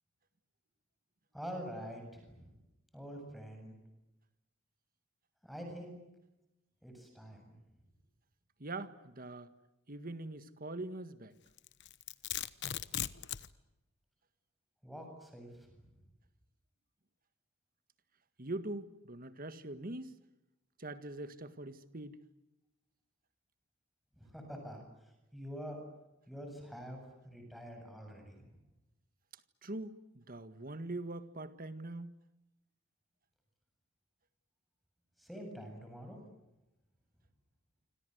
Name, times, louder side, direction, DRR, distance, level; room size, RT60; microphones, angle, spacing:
voice 1, 1.3-2.6 2.9-3.7 5.4-5.9 6.8-7.5 14.8-15.9 24.2-25.8 26.3-28.6 35.2-36.2, equal, ahead, 7.6 m, -46 dB
voice 2, 8.6-9.5 9.9-11.3 18.4-20.2 20.8-22.2 29.6-32.1, right 2 dB, 45° right, 1.8 m, -43 dB
Domestic sounds home sounds, 11.6-13.5, left 11 dB, 55° left, 1.0 m, -38 dB
28.5 x 26.0 x 8.0 m
head